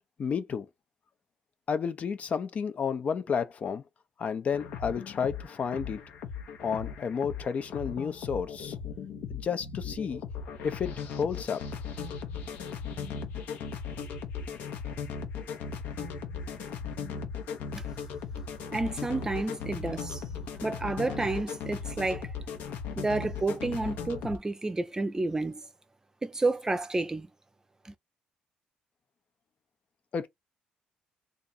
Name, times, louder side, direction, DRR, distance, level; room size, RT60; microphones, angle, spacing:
voice 1, 0.2-0.7 1.7-3.8 4.2-6.0 6.6-8.8 9.3-10.2 10.6-11.6 30.1-30.3, left 6 dB, 50° left, 0.6 m, -31 dB
sound 1, 4.5-24.4, left 6 dB, 80° left, 0.8 m, -38 dB
voice 2, 18.7-20.2 20.6-22.3 23.0-25.6 26.2-27.3 27.9-28.0, right 2 dB, 20° right, 0.5 m, -30 dB
2.5 x 2.5 x 4.1 m
supercardioid pair, 65°, 3 cm